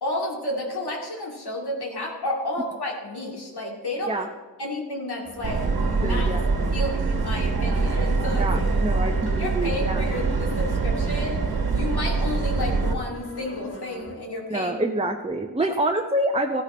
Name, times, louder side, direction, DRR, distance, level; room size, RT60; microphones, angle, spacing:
voice 1, 0.0-4.3 4.6-6.3 6.7-8.5 9.4-11.4 11.7-14.7, left 1 dB, 60° left, -1 dB, 2.5 m, -31 dB
sound 1, 5.2-14.2, left 1 dB, 30° left, 3.3 m, -41 dB
Subway metro underground, 5.4-12.9, right 4 dB, 55° right, 1.5 m, -24 dB
voice 2, 6.0-6.5 8.4-10.1 14.5-16.6, right 1 dB, 15° right, 3 dB, 0.8 m, -26 dB
15.5 x 10.0 x 4.3 m, 1.4 s
cardioid pair, 60°, 43 cm